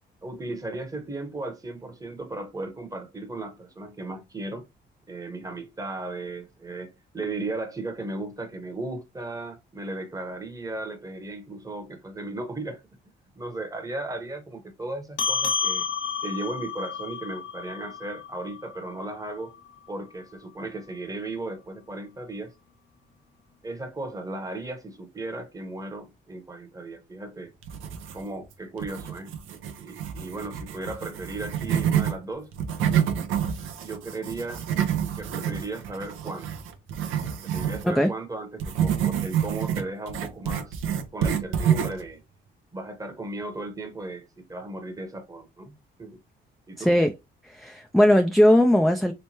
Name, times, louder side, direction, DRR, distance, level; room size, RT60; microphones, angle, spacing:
voice 1, 0.2-4.6 5.1-12.8 13.3-15.9 16.2-19.5 19.9-22.5 23.6-27.5 28.1-29.4 29.8-32.5 33.8-34.6 35.2-36.5 37.4-40.8 41.1-42.2 42.7-45.7 46.0-46.2 46.7-47.0, right 2 dB, 15° right, 0.9 m, -36 dB
sound 1, 15.2-20.0, left 5 dB, 90° left, 1.0 m, -31 dB
sound 2, 27.6-28.4 28.8-32.1 32.5-37.9 38.6-42.1, right 9 dB, 90° right, 0.6 m, -28 dB
voice 2, 46.8-47.1 47.4-49.1, equal, ahead, 0.3 m, -19 dB
3.2 x 3.1 x 2.8 m
cardioid pair, 90°, 20 cm